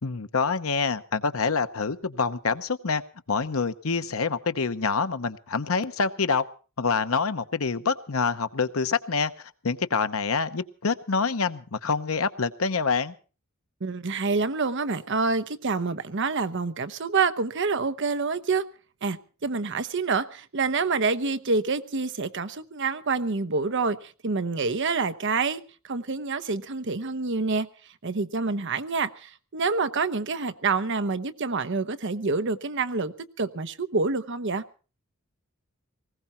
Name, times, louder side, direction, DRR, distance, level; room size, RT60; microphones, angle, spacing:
voice 1, 0.0-3.0 3.3-6.5 6.8-9.3 9.6-13.1, left 5 dB, 85° left, 0.9 m, -26 dB
voice 2, 13.8-18.6 19.0-27.7 28.0-34.6, right 4 dB, 60° right, 0.9 m, -27 dB
19.5 x 16.5 x 4.4 m
head